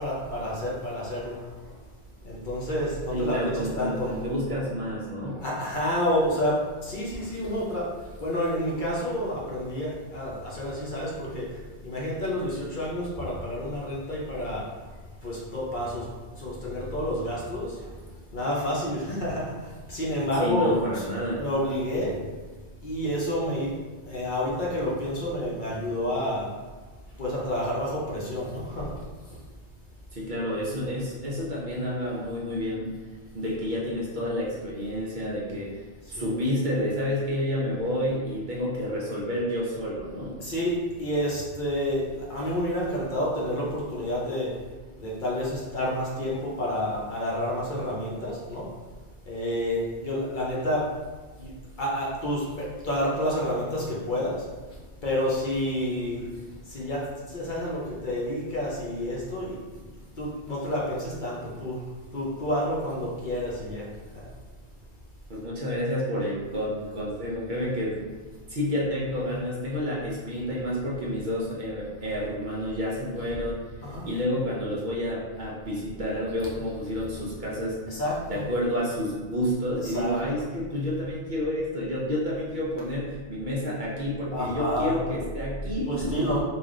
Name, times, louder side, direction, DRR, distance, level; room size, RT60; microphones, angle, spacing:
voice 1, 0.0-1.4 1.6-1.7 2.2-4.1 5.4-6.6 6.8-7.9 8.2-11.5 11.8-14.8 15.2-16.1 16.3-17.9 18.3-19.4 19.9-21.0 21.4-22.1 22.8-23.7 24.0-26.5 27.2-29.0 36.2-36.4 40.4-44.5 45.0-48.6 49.3-50.8 51.4-51.5 51.8-54.3 55.0-56.3 56.7-57.0 57.3-59.9 60.2-61.9 62.1-63.8 73.8-74.1 77.9-78.5 79.7-80.4 84.3-85.2 85.9-86.4, left 1 dB, 50° left, -5 dB, 0.8 m, -29 dB
voice 2, 3.1-5.4 20.4-21.4 30.1-32.9 33.3-35.8 36.1-40.4 65.3-68.0 68.5-73.6 74.0-77.8 78.3-86.4, equal, 50° right, -5 dB, 0.7 m, -29 dB
3.3 x 2.3 x 3.7 m, 1.3 s
omnidirectional pair, 1.2 m